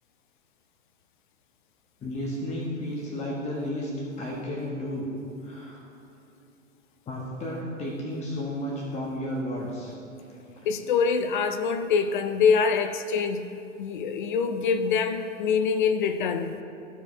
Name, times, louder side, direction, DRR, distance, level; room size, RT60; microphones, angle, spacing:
voice 1, 2.0-3.9 4.2-5.1 5.4-5.8 7.1-9.9, left 1 dB, 15° left, -4 dB, 1.2 m, -32 dB
voice 2, 10.7-13.5 13.8-16.6, left 6 dB, 40° left, 9 dB, 0.4 m, -25 dB
14.0 x 5.0 x 3.2 m, 2.7 s
figure-of-eight pair, 110°, 40 cm